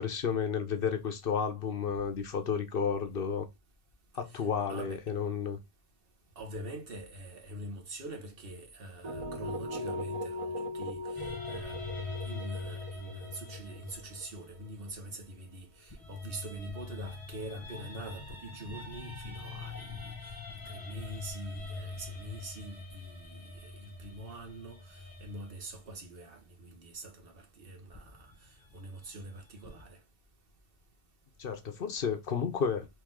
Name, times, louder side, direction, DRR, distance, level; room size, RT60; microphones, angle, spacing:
voice 1, 0.0-3.5 4.1-5.6 31.4-32.9, left 6 dB, 60° left, 1.0 m, -32 dB
voice 2, 4.3-5.0 6.4-20.4 20.7-28.3 28.7-30.0, right 1 dB, 60° right, 1.3 m, -44 dB
sound 1, 9.0-14.9, left 1 dB, 45° right, 0.5 m, -39 dB
sound 2, 11.1-15.4 15.9-25.9 27.9-29.8, left 3 dB, 20° left, 1.3 m, -44 dB
4.5 x 2.9 x 3.6 m
omnidirectional pair, 1.1 m